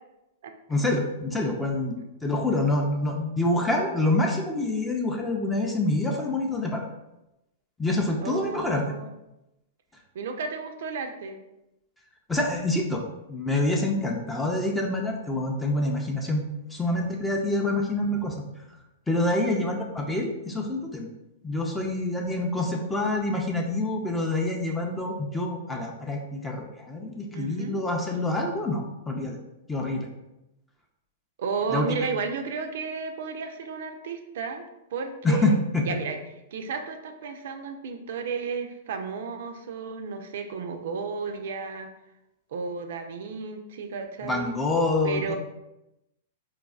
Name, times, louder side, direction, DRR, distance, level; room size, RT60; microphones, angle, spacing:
voice 1, 0.7-6.9 7.8-8.8 12.3-13.0 13.3-16.4 16.7-18.4 19.1-21.1 21.4-29.4 29.7-30.1 31.7-32.1 35.2-35.8 44.2-45.4, left 2 dB, 10° left, 1 dB, 0.5 m, -26 dB
voice 2, 8.2-9.1 10.1-11.4 19.3-19.6 27.3-27.8 31.4-34.6 34.9-35.6 35.9-36.2 36.5-41.9 42.5-44.5 45.0-45.4, right 5 dB, 65° right, 6 dB, 0.4 m, -33 dB
4.0 x 2.5 x 2.3 m, 0.92 s
hypercardioid pair, 110°, 0 cm